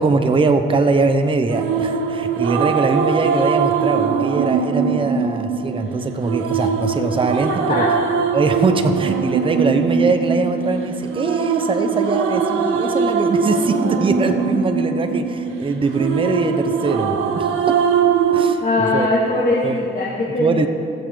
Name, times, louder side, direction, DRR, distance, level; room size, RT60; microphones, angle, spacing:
voice 1, 0.0-7.8 8.3-17.8 18.3-19.1 19.6-19.8 20.4-20.7, right 3 dB, 25° right, 7 dB, 0.8 m, -21 dB
sound 1, 1.5-18.5, right 6 dB, 90° right, 0.8 m, -21 dB
voice 2, 18.6-20.7, left 2 dB, 40° left, -6 dB, 2.2 m, -20 dB
20.5 x 7.3 x 3.9 m, 2.6 s
cardioid pair, 90°, 20 cm